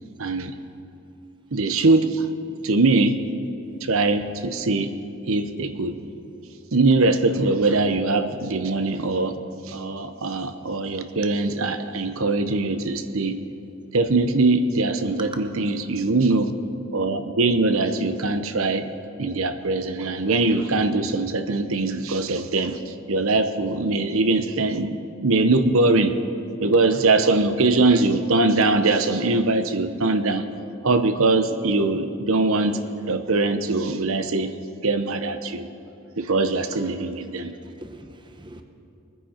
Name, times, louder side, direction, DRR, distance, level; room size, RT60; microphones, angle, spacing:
voice 1, 0.2-0.6 1.5-2.3 2.6-3.2 3.8-4.9 5.3-6.0 6.7-9.3 9.6-13.4 13.9-16.5 16.9-18.9 19.2-26.2 26.6-30.5 30.8-32.8 33.1-34.5 34.8-35.7 36.2-37.5, right 3 dB, 70° right, 10 dB, 0.8 m, -22 dB
voice 2, 37.2-38.6, right 2 dB, 20° right, 6 dB, 0.8 m, -43 dB
23.0 x 10.0 x 4.4 m, 2.8 s
head